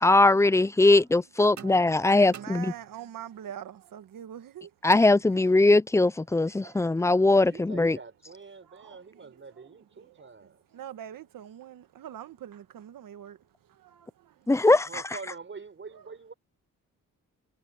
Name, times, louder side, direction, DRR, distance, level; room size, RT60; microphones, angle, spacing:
voice 1, 0.0-2.7 4.8-8.0 14.5-15.2, left 2 dB, 10° left, 0.4 m, -21 dB
voice 2, 1.5-4.7 5.3-5.5 6.4-7.3 7.8-8.0 8.3-14.6 15.9-16.2, right 10 dB, 80° right, 1.6 m, -45 dB
sound 1, 1.6-3.2 4.9-5.9, right 8 dB, 60° right, 2.6 m, -48 dB
voice 3, 7.4-10.6 14.8-16.3, right 4 dB, 35° right, 6.2 m, -45 dB
cardioid pair, 95°, 32 cm